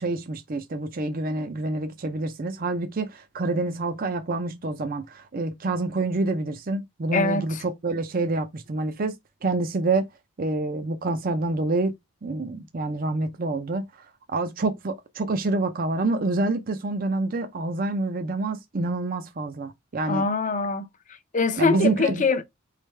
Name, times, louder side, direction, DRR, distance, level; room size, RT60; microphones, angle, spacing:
voice 1, 0.0-9.1 9.4-10.1 10.4-11.9 12.2-13.8 14.3-20.3 21.6-22.2, right 2 dB, 40° right, 0.5 m, -27 dB
voice 2, 7.1-7.6 20.1-20.9 21.3-22.4, left 3 dB, 35° left, 0.6 m, -23 dB
4.5 x 3.3 x 3.2 m
head